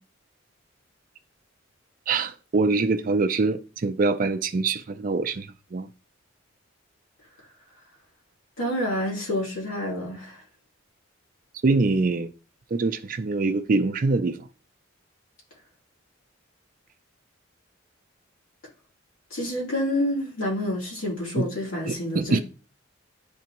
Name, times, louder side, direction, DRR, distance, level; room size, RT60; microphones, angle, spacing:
voice 1, 2.1-5.9 11.6-12.3 12.7-14.5 21.4-21.5 21.9-22.4, right 3 dB, 40° right, 0.4 m, -24 dB
voice 2, 8.6-10.4 19.3-22.4, left 1 dB, 85° left, 2.9 m, -28 dB
10.0 x 3.4 x 3.0 m
head